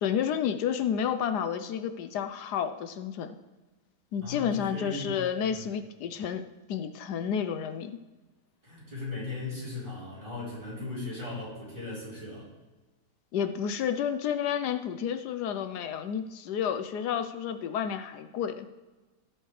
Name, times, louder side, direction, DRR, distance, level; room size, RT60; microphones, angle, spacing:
voice 1, 0.0-3.3 4.1-6.4 6.7-8.0 13.3-18.7, left 8 dB, 75° left, 10 dB, 1.3 m, -30 dB
voice 2, 4.2-5.2 5.5-5.7 8.6-12.5, left 2 dB, 20° right, -6 dB, 4.5 m, -38 dB
17.5 x 7.8 x 3.3 m, 1.2 s
omnidirectional pair, 1.8 m